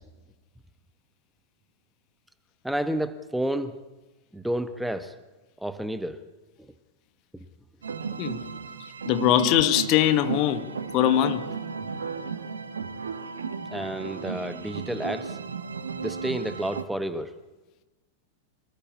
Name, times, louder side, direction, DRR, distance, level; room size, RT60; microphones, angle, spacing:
voice 1, 2.6-3.7 4.3-5.1 5.6-6.2 13.7-15.4 16.0-17.3, right 1 dB, 5° right, 11 dB, 1.4 m, -30 dB
sound 1, 7.8-16.8, right 5 dB, 70° right, 1.7 m, -34 dB
voice 2, 9.0-10.7 10.9-11.4, left 12 dB, 40° left, 10 dB, 1.8 m, -21 dB
25.5 x 18.5 x 8.5 m, 1.1 s
figure-of-eight pair, 90°, 0 cm